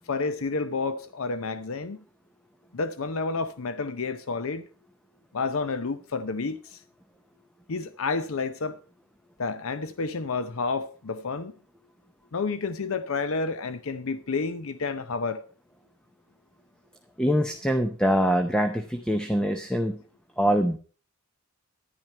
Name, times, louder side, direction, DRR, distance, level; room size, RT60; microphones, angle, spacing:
voice 1, 0.1-2.0 2.7-4.6 5.3-6.8 7.7-8.8 9.4-11.5 12.3-15.4, left 4 dB, 65° left, 0.6 m, -30 dB
voice 2, 17.2-20.0 20.4-20.8, equal, 5° left, 0.7 m, -24 dB
10.5 x 10.5 x 4.3 m
head